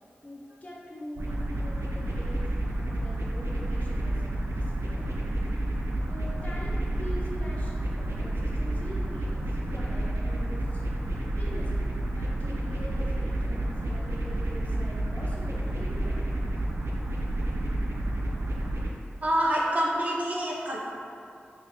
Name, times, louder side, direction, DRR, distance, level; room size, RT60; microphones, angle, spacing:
voice 1, 0.2-5.1 6.0-10.8 11.4-16.2, left 1 dB, 35° left, -5 dB, 0.8 m, -43 dB
sound 1, 1.2-18.9, right 1 dB, 85° right, 0.3 m, -30 dB
voice 2, 19.2-20.8, equal, 40° right, -4 dB, 0.7 m, -26 dB
4.8 x 2.5 x 2.3 m, 2.5 s
cardioid pair, 50°, 4 cm